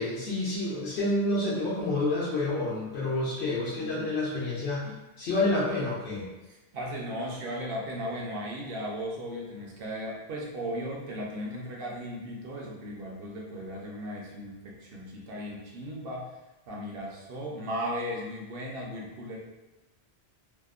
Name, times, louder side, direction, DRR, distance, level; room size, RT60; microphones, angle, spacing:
voice 1, 0.0-4.9 5.2-6.2, left 2 dB, 80° left, -8 dB, 0.8 m, -29 dB
voice 2, 3.8-4.1 6.5-16.3 16.7-19.4, equal, 70° right, -2 dB, 0.8 m, -36 dB
2.7 x 2.0 x 2.3 m, 1.1 s
omnidirectional pair, 1.1 m